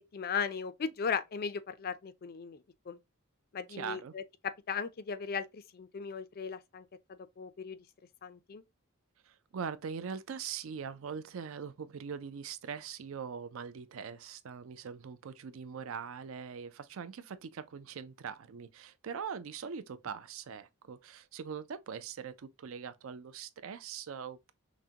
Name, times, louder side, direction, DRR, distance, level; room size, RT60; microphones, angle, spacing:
voice 1, 0.1-3.0 3.5-6.9 7.4-7.8 8.2-8.6, left 6 dB, 45° left, 0.4 m, -37 dB
voice 2, 3.7-4.1 9.2-24.5, right 6 dB, 60° right, 0.4 m, -42 dB
6.0 x 2.1 x 2.8 m
head